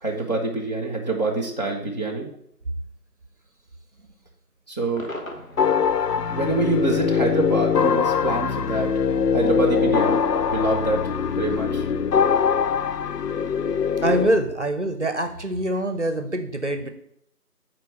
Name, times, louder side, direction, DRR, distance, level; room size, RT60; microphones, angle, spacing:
voice 1, 0.0-2.3 4.7-5.1 6.3-8.9 9.3-10.2 10.5-11.1 11.4-11.9, right 2 dB, 25° left, -2 dB, 0.9 m, -25 dB
Cheering / Crowd / Fireworks, 5.0-10.2, left 1 dB, 55° left, 1.6 m, -43 dB
sound 1, 5.6-14.3, left 6 dB, 90° left, 0.6 m, -22 dB
voice 2, 14.0-16.9, right 1 dB, 50° right, 9 dB, 0.7 m, -24 dB
7.5 x 4.5 x 5.8 m, 0.73 s
figure-of-eight pair, 170°, 48 cm